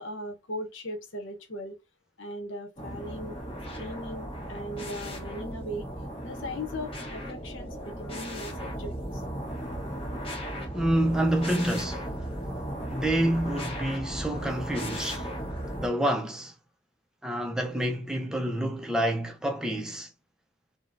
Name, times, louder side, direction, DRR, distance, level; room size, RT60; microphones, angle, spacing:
voice 1, 0.0-1.8 2.2-3.4 3.8-5.9 6.2-9.2, equal, 75° left, 0.8 m, -38 dB
sound 1, 2.8-15.9, equal, 30° left, 0.9 m, -36 dB
voice 2, 10.7-12.0 12.9-15.3 15.8-16.5 17.2-20.1, right 1 dB, 5° right, 0.4 m, -28 dB
3.5 x 2.0 x 2.5 m
head